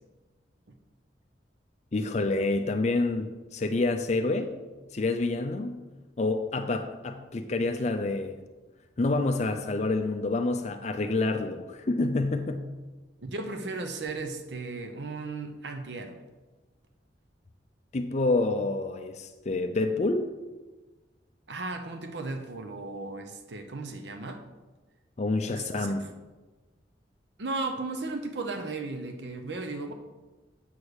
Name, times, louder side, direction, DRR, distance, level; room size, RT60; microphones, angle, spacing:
voice 1, 1.9-4.5 4.9-5.8 6.2-8.4 9.0-12.7 17.9-20.3 25.2-26.1, left 2 dB, 40° left, 0.5 m, -28 dB
voice 2, 13.2-16.2 21.5-24.4 25.4-26.0 27.4-29.9, right 3 dB, 75° right, 0.8 m, -35 dB
8.3 x 4.8 x 6.4 m
head